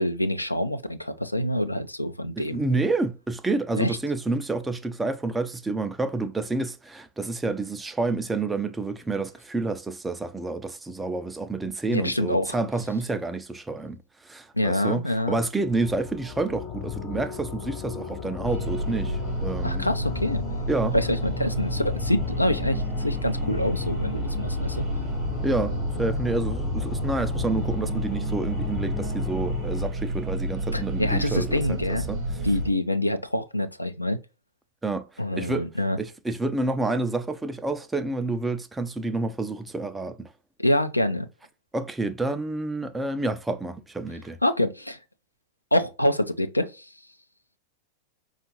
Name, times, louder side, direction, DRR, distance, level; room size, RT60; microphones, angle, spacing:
voice 1, 0.0-2.6 3.8-4.0 11.9-12.5 14.5-15.4 19.6-20.4 20.9-24.8 30.7-32.1 32.4-34.2 35.2-36.0 40.6-41.3 44.4-45.0 45.7-46.9, left 1 dB, 85° left, 0.5 m, -26 dB
voice 2, 2.4-19.9 20.7-21.0 25.4-32.2 34.8-35.1 35.3-35.7 36.0-40.3 41.7-44.4, right 3 dB, 10° right, 0.4 m, -29 dB
sound 1, 15.5-29.9, left 9 dB, 45° left, 0.7 m, -35 dB
sound 2, 18.4-32.7, right 1 dB, 30° right, 1.0 m, -30 dB
5.0 x 2.4 x 2.9 m
figure-of-eight pair, 90°, 0 cm